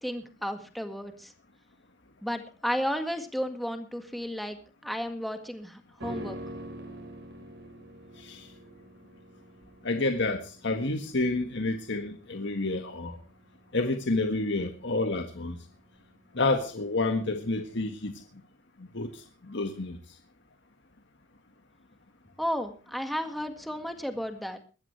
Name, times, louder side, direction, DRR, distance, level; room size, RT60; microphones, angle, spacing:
voice 1, 0.0-1.3 2.2-4.6 4.8-6.4 22.4-24.6, equal, ahead, 1.8 m, -33 dB
sound 1, 6.0-15.4 15.7-15.8, right 1 dB, 65° right, 4.7 m, -45 dB
voice 2, 9.8-13.2 13.7-15.6 16.3-18.2 18.9-20.0, left 2 dB, 65° left, 1.7 m, -29 dB
21.5 x 14.5 x 3.3 m
head